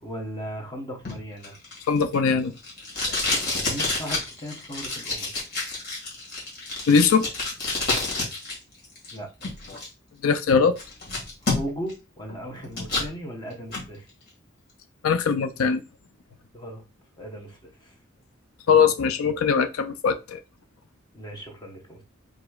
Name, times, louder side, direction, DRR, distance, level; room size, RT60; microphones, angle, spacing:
voice 1, 0.0-1.5 3.0-3.4 3.7-5.3 9.1-9.3 11.4-14.0 16.5-16.8 17.2-17.9 21.1-22.0, equal, 20° left, 0.9 m, -37 dB
Packing tape duct tape, 1.0-8.6 8.8-9.9 10.3-10.4 10.8-11.9 12.3-13.1 13.5-13.9, left 3 dB, 50° left, 1.8 m, -29 dB
voice 2, 1.9-2.5 6.9-7.3 10.2-10.7 15.0-15.8 18.7-20.4, left 6 dB, 85° left, 0.4 m, -20 dB
4.9 x 3.7 x 2.3 m
head